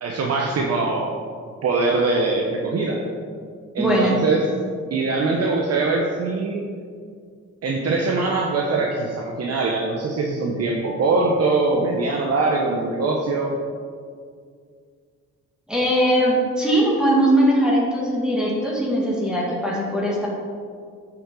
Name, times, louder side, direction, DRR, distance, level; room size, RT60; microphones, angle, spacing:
voice 1, 0.0-1.1 1.6-3.0 3.7-4.5 4.9-6.6 7.6-13.6, right 3 dB, 55° right, 0 dB, 1.0 m, -22 dB
voice 2, 3.8-4.2 15.7-20.3, right 1 dB, 5° right, -5 dB, 2.1 m, -20 dB
9.7 x 6.0 x 3.8 m, 2.1 s
cardioid pair, 90°, 30 cm